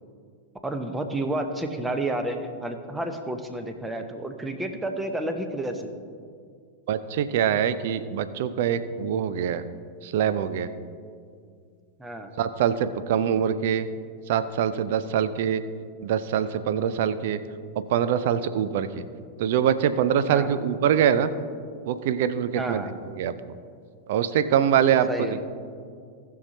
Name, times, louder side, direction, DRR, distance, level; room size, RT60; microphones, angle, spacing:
voice 1, 0.6-5.9 12.0-12.3 20.3-20.6 22.6-22.9 25.1-25.4, right 1 dB, 10° right, 6 dB, 1.0 m, -30 dB
voice 2, 6.9-9.6 10.0-10.7 12.4-13.9 14.3-15.6 16.0-17.4 17.9-19.0 19.4-21.3 21.9-22.8 23.2-23.3 24.1-25.4, right 9 dB, 55° right, 13 dB, 0.5 m, -24 dB
18.5 x 6.6 x 2.8 m, 2.2 s
figure-of-eight pair, 90°, 0 cm